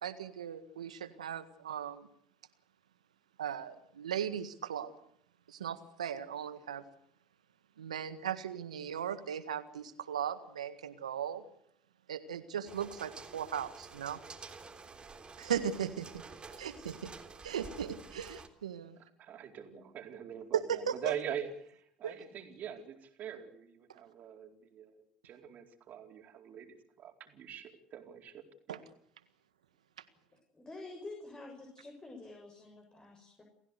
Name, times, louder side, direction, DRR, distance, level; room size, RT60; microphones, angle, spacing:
voice 1, 0.0-2.1 3.4-4.9 5.5-6.8 7.8-11.4 12.1-14.2 15.4-16.2 16.6-17.1 17.4-19.0 20.5-20.9 22.0-22.1 28.7-28.8, right 8 dB, 90° right, 12 dB, 1.7 m, -37 dB
sound 1, 12.7-18.5, right 4 dB, 25° right, 3.6 m, -50 dB
voice 2, 19.0-28.8, right 9 dB, 50° right, 5 dB, 4.5 m, -44 dB
voice 3, 30.5-33.4, left 2 dB, 20° left, 2 dB, 7.3 m, -48 dB
29.0 x 15.5 x 8.2 m, 0.68 s
hypercardioid pair, 70°, 4 cm